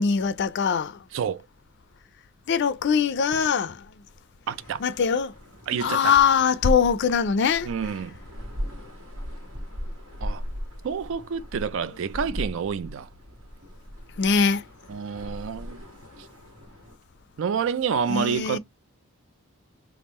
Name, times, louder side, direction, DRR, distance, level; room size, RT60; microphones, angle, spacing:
voice 1, 0.0-1.0 2.5-3.8 4.8-5.3 5.8-7.7 14.2-14.6 18.1-18.6, left 6 dB, 55° left, 0.4 m, -22 dB
voice 2, 1.1-1.4 4.5-4.8 5.7-6.2 7.7-8.2 10.2-10.4 10.8-13.1 14.9-15.8 17.4-18.6, right 6 dB, 65° right, 0.4 m, -28 dB
sound 1, 4.5-17.0, equal, 85° right, 1.7 m, -39 dB
3.5 x 2.4 x 4.1 m
head